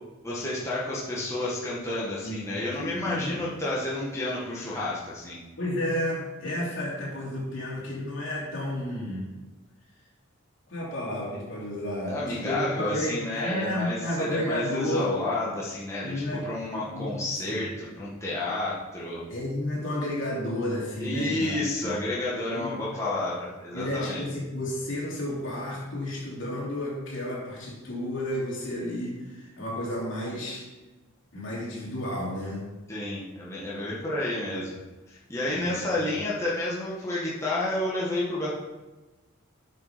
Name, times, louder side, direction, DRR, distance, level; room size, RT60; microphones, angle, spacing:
voice 1, 0.2-5.4 12.1-19.2 21.0-24.2 32.9-34.8 35.1-38.5, left 2 dB, 15° left, -7 dB, 1.7 m, -30 dB
voice 2, 2.2-3.3 5.6-9.2 10.7-15.1 16.0-16.5 16.9-17.6 19.3-21.6 21.8-22.0 22.5-22.8 23.7-30.7 31.3-32.7 35.5-36.1, left 1 dB, 65° left, -4 dB, 3.2 m, -32 dB
8.5 x 6.6 x 5.2 m, 1.1 s
head